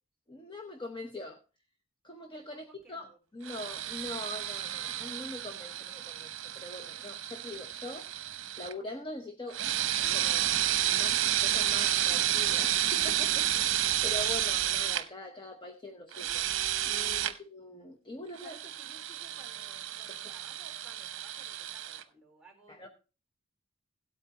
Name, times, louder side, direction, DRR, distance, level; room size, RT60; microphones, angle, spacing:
voice 1, 0.3-1.4 2.0-8.1 8.6-9.6 10.1-10.5 10.8-16.4 16.8-18.5 22.7-22.9, left 2 dB, 20° left, 3 dB, 0.9 m, -43 dB
voice 2, 2.5-3.2 17.1-17.4 18.2-22.9, right 3 dB, 5° right, 1 dB, 3.7 m, -57 dB
sound 1, 3.5-8.7 9.5-15.0 16.1-17.3 18.4-22.0, right 12 dB, 65° right, 0.8 m, -31 dB
17.0 x 8.4 x 2.9 m, 0.33 s
head